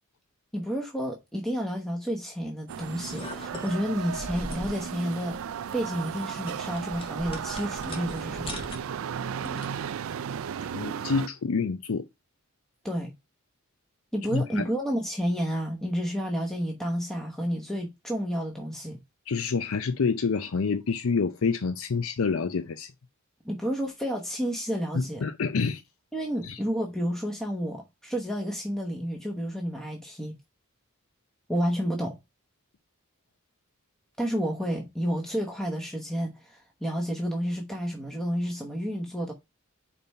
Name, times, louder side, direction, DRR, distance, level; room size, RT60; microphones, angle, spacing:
voice 1, 0.5-5.4 5.7-8.5 12.8-13.1 14.1-19.0 23.4-25.2 26.1-30.4 31.5-32.2 34.2-39.3, equal, ahead, 1.0 m, -30 dB
sound 1, 2.7-11.3, right 7 dB, 65° right, 0.3 m, -35 dB
sound 2, 2.8-9.9, left 1 dB, 25° left, 1.5 m, -42 dB
voice 2, 10.7-12.1 14.3-14.7 19.3-22.9 24.9-25.8 26.4-26.6, left 5 dB, 70° left, 0.5 m, -27 dB
5.3 x 4.3 x 5.4 m
head